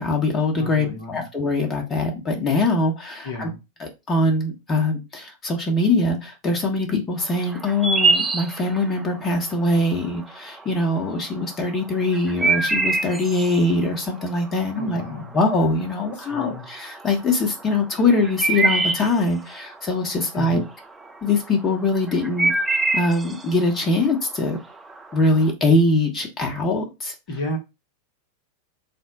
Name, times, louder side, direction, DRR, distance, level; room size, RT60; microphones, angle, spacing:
voice 1, 0.0-3.5 3.8-20.6 21.2-22.5 22.9-24.6 25.1-27.1, left 2 dB, 20° left, 1.0 m, -22 dB
voice 2, 0.6-1.2 3.2-3.6 14.7-15.4 16.1-16.7 20.3-20.7 27.3-27.6, left 1 dB, 50° left, 0.9 m, -32 dB
sound 1, 7.2-25.5, right 3 dB, 10° right, 0.5 m, -26 dB
4.3 x 2.1 x 3.9 m
figure-of-eight pair, 90°, 0 cm